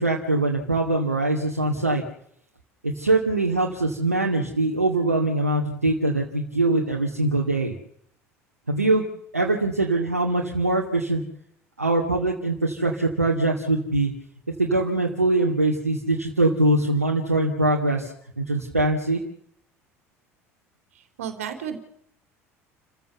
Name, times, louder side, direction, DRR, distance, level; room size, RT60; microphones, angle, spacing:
voice 1, 0.0-2.0 2.8-7.7 8.7-9.0 9.3-11.2 11.8-14.1 14.6-18.1 18.4-19.2, right 2 dB, 85° right, 0 dB, 2.3 m, -22 dB
voice 2, 21.2-21.8, right 8 dB, 70° right, 8 dB, 3.6 m, -31 dB
29.0 x 15.0 x 6.8 m, 0.70 s
figure-of-eight pair, 60°, 8 cm